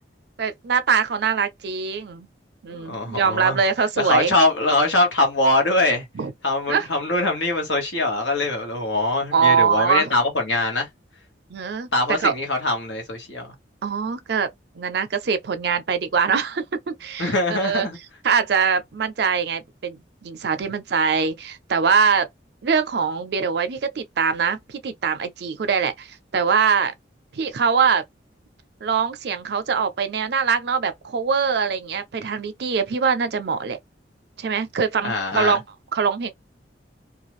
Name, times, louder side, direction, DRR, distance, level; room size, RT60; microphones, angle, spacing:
voice 1, 0.4-2.3 2.6-4.3 6.2-6.3 6.7-6.9 9.3-10.1 11.5-11.9 12.2-12.3 13.8-14.5 14.8-17.9 18.2-22.3 22.6-26.9 27.3-28.0 28.8-33.8 34.4-35.6 35.9-36.3, right 6 dB, 60° right, 0.5 m, -23 dB
voice 2, 2.7-3.6 4.0-6.0 6.4-10.9 11.9-13.5 17.2-18.0 35.0-35.6, left 2 dB, 90° left, 1.2 m, -22 dB
2.4 x 2.3 x 3.0 m
head